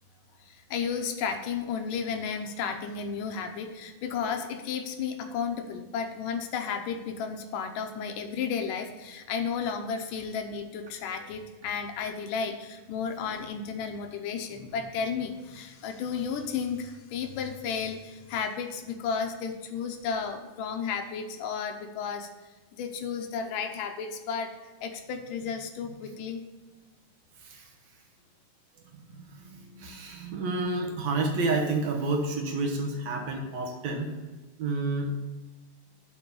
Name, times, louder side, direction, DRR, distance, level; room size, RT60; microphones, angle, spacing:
voice 1, 0.4-22.3 22.7-24.5 24.8-26.4, left 6 dB, 75° left, 5 dB, 2.3 m, -33 dB
voice 2, 29.2-34.1 34.6-35.1, right 3 dB, 65° right, 1 dB, 2.0 m, -30 dB
7.7 x 4.8 x 6.9 m, 1.2 s
omnidirectional pair, 4.0 m